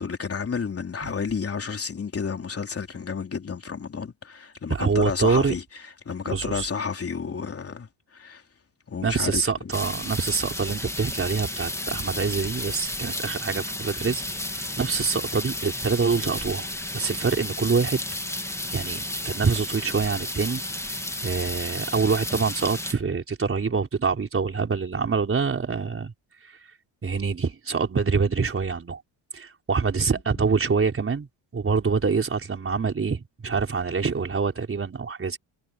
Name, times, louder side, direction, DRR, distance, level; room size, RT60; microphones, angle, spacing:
voice 1, 0.0-8.4 8.9-9.4, left 5 dB, 30° left, 3.7 m, -31 dB
voice 2, 4.7-5.5 6.2-6.7 9.0-14.2 14.5-16.7 16.9-18.0 18.7-20.6 21.2-26.1 27.0-29.0 29.3-31.3 31.5-35.4, right 5 dB, 25° right, 4.5 m, -25 dB
sound 1, 9.7-22.9, left 1 dB, 5° left, 2.5 m, -32 dB
cardioid pair, 115°, 49 cm